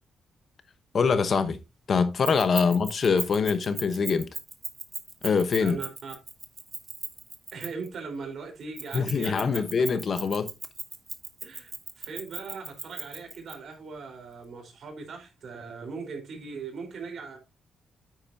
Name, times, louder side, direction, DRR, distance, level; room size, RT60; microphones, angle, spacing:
voice 1, 0.9-1.6 1.9-4.3 5.2-5.8 8.9-10.5, left 5 dB, 40° left, 1.0 m, -24 dB
Keys jangling, 2.2-7.9 8.8-13.5, right 3 dB, 25° right, 1.4 m, -37 dB
voice 2, 5.6-6.2 7.5-9.7 11.4-17.4, right 4 dB, 55° right, 4.1 m, -39 dB
9.9 x 8.8 x 2.8 m
wide cardioid pair, 155°, 0 cm